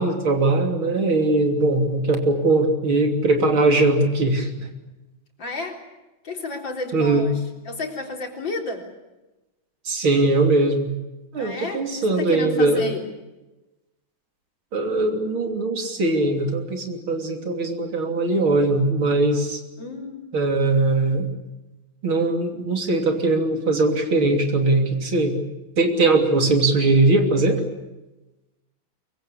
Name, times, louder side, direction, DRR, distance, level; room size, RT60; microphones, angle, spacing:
voice 1, 0.0-4.7 6.9-7.3 9.9-10.9 11.3-12.8 14.7-19.6 20.3-21.3 22.0-25.4 25.8-27.6, right 2 dB, 85° right, 4 dB, 3.9 m, -20 dB
voice 2, 5.4-5.8 6.2-7.4 7.7-8.9 11.4-13.0 19.8-20.3, left 3 dB, 65° left, 2 dB, 4.6 m, -31 dB
23.5 x 23.5 x 8.5 m, 1.0 s
omnidirectional pair, 2.2 m